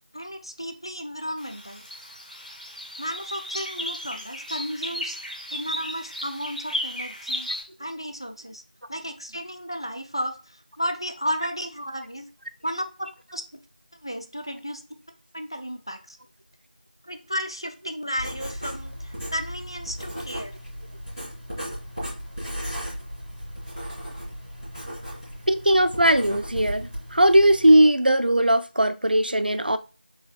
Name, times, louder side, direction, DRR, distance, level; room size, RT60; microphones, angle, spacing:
voice 1, 0.1-1.8 3.0-5.2 5.5-7.5 7.8-8.6 8.9-12.3 12.6-13.4 14.0-14.8 15.3-16.2 17.0-20.6, equal, 30° left, 0.4 m, -33 dB
sound 1, 1.4-7.6, left 1 dB, 55° left, 1.8 m, -34 dB
Writing, 18.2-27.8, equal, 5° right, 1.4 m, -36 dB
voice 2, 25.5-29.8, right 1 dB, 65° right, 0.6 m, -19 dB
5.3 x 4.0 x 2.3 m
figure-of-eight pair, 180°, 5 cm